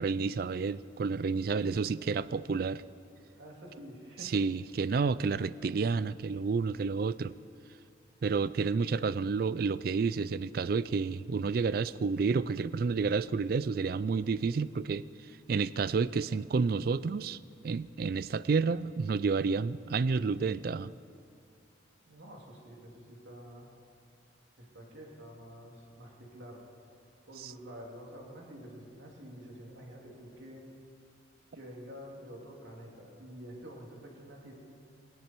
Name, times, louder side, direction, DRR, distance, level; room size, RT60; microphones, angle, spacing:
voice 1, 0.0-2.8 4.2-7.3 8.2-15.1 15.5-17.4 17.6-20.9 27.4-27.5, right 4 dB, 50° right, 18 dB, 0.3 m, -30 dB
voice 2, 3.4-4.4 22.0-23.7 24.6-26.6 27.2-30.7 31.5-34.5, equal, 75° right, -1 dB, 3.0 m, -48 dB
18.5 x 17.5 x 4.5 m, 2.4 s
head